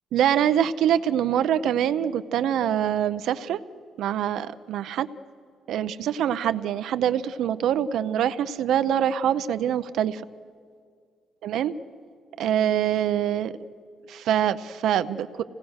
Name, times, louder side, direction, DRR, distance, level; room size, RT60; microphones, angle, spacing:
voice 1, 0.1-3.6 4.0-5.1 5.7-10.2 11.4-11.7 12.4-13.5 14.1-15.4, right 10 dB, 70° right, 11 dB, 0.7 m, -24 dB
27.0 x 18.0 x 6.4 m, 2.1 s
cardioid pair, 175°, 0 cm